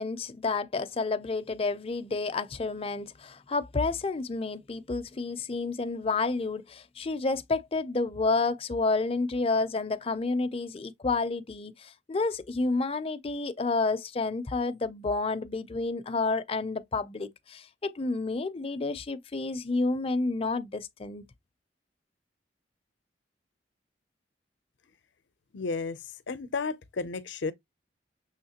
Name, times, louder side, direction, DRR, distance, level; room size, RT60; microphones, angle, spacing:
voice 1, 0.0-21.2, left 3 dB, 30° left, 0.4 m, -30 dB
voice 2, 25.5-26.0 26.3-27.5, left 4 dB, 75° left, 0.5 m, -32 dB
6.4 x 2.9 x 2.8 m
head